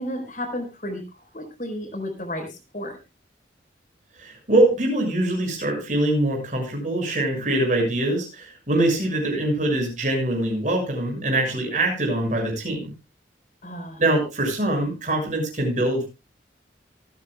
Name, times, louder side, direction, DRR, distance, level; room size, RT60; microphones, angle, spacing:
voice 1, 0.0-3.0 13.6-14.0, left 1 dB, 45° left, 4 dB, 4.6 m, -33 dB
voice 2, 4.2-12.9 14.0-16.1, right 1 dB, 45° right, 2 dB, 6.6 m, -23 dB
26.0 x 9.6 x 2.3 m, 0.27 s
head